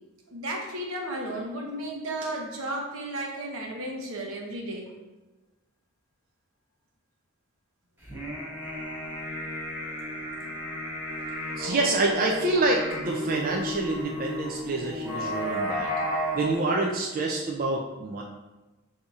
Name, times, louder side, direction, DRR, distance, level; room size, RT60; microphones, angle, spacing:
voice 1, 0.3-4.9, right 1 dB, 80° right, 0 dB, 0.9 m, -34 dB
sound 1, 8.0-16.5, equal, 10° right, 0.9 m, -33 dB
voice 2, 11.5-15.9 16.3-18.2, right 2 dB, 40° right, 0 dB, 0.4 m, -27 dB
6.6 x 2.7 x 2.4 m, 1.1 s
head